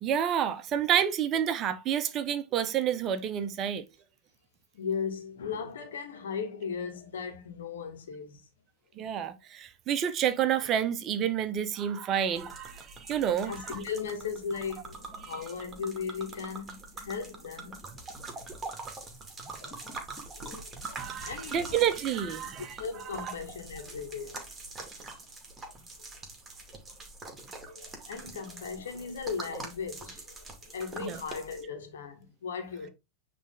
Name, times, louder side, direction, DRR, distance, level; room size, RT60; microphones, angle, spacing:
voice 1, 0.0-3.8 9.0-13.5 21.0-22.8 23.2-23.3 31.0-31.2, right 9 dB, 30° right, 0.8 m, -29 dB
voice 2, 4.7-8.5 13.5-18.0 19.5-20.0 20.3-21.9 22.8-24.5 27.5-30.5 30.7-32.9, left 6 dB, 60° left, 1.9 m, -37 dB
sound 1, 12.3-31.6, right 3 dB, 15° right, 2.3 m, -44 dB
9.3 x 3.5 x 3.7 m
figure-of-eight pair, 90°, 0 cm